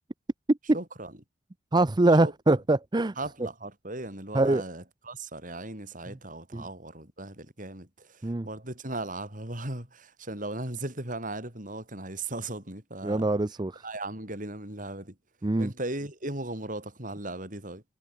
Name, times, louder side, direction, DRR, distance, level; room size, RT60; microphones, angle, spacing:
voice 1, 0.7-1.2 2.2-2.6 3.2-13.3 13.8-15.2 15.6-17.8, right 2 dB, 45° right, 7.4 m, -37 dB
voice 2, 1.7-3.1 4.3-4.6 6.5-6.6 8.2-8.5 13.0-13.8 15.4-15.7, right 2 dB, 25° right, 0.6 m, -23 dB
head